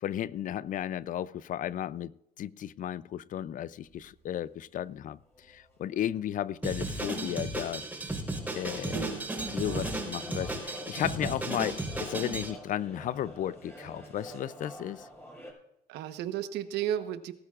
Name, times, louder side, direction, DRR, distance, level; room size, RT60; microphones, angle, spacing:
voice 1, 0.0-5.2 5.5-7.8 8.5-9.0 9.5-15.1, left 11 dB, 50° left, 0.5 m, -34 dB
sound 1, 3.8-4.5 4.8-4.9 5.3-15.5, equal, 15° left, 5.2 m, -49 dB
Drum kit, 6.6-12.5, right 2 dB, 10° right, 4.0 m, -34 dB
voice 2, 8.9-9.3 9.6-9.8 15.9-17.3, right 10 dB, 85° right, 1.1 m, -34 dB
19.5 x 13.0 x 2.5 m
cardioid pair, 110°, 17 cm